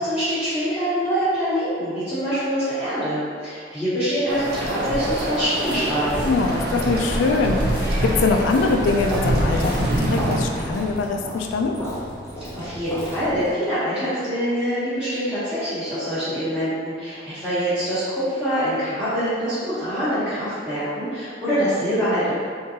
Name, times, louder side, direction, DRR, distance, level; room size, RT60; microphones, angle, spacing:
voice 1, 0.0-6.1 12.4-22.3, equal, 5° right, -19 dB, 1.0 m, -24 dB
sound 1, 4.3-11.0, right 1 dB, 55° right, 0.5 m, -25 dB
voice 2, 6.2-11.8, left 3 dB, 80° left, 3 dB, 0.3 m, -23 dB
Walk footsteps, 8.0-13.6, equal, 15° left, 0.4 m, -34 dB
3.7 x 2.6 x 2.8 m, 2.1 s
head